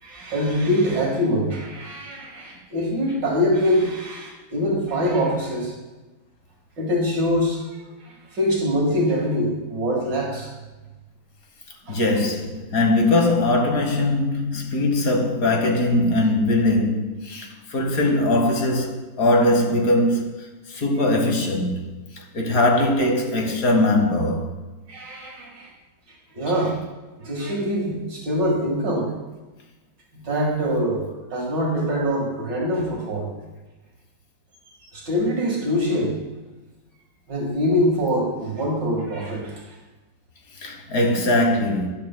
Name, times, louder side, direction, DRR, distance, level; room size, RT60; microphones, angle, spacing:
voice 1, 0.0-5.7 6.8-10.5 11.9-12.0 24.9-25.7 26.3-26.8 27.2-29.1 30.1-33.3 34.9-36.2 37.3-39.6, equal, 65° right, 2.4 m, -24 dB
voice 2, 11.9-21.8 22.1-24.5 40.6-41.9, left 1 dB, 50° left, 1.6 m, -21 dB
12.5 x 10.0 x 2.2 m
omnidirectional pair, 2.1 m